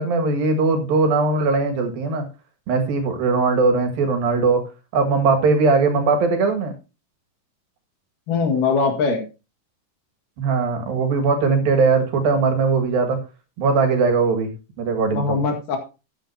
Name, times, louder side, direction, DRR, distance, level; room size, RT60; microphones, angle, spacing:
voice 1, 0.0-2.3 2.7-4.6 4.9-6.7 10.4-13.2 13.6-14.5 14.8-15.4, right 4 dB, 75° right, 6 dB, 3.5 m, -19 dB
voice 2, 8.3-9.2 15.1-15.8, left 4 dB, 65° left, 4 dB, 3.2 m, -21 dB
13.5 x 9.0 x 2.8 m, 0.29 s
omnidirectional pair, 4.3 m